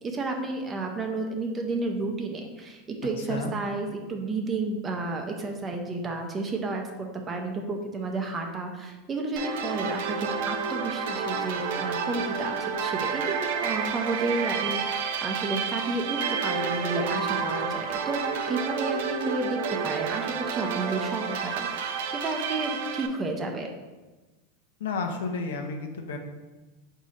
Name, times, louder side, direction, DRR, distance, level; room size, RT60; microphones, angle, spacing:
voice 1, 0.0-22.0 22.2-23.7, right 3 dB, 20° right, 3 dB, 0.5 m, -31 dB
voice 2, 3.2-3.5 24.8-26.2, left 4 dB, 90° left, 5 dB, 0.6 m, -31 dB
sound 1, 9.4-23.1, right 6 dB, 75° right, 0.4 m, -30 dB
4.0 x 2.7 x 4.9 m, 1.2 s
supercardioid pair, 140°, 0 cm